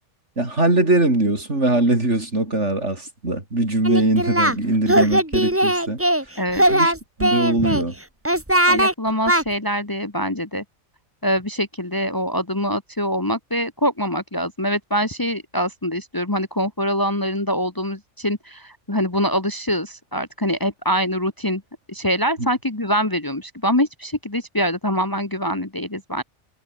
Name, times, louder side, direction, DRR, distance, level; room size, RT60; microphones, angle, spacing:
voice 1, 0.4-6.0 6.7-6.9 7.2-7.9 22.4-22.5, right 2 dB, 70° right, 5.7 m, -21 dB
Singing, 3.8-4.6 4.9-6.2 6.5-7.8 8.2-8.9 9.3-9.4, right 1 dB, 10° right, 2.7 m, -19 dB
voice 2, 8.7-10.6 11.2-21.6 21.9-26.2, equal, 15° left, 1.4 m, -24 dB
omnidirectional pair, 1.3 m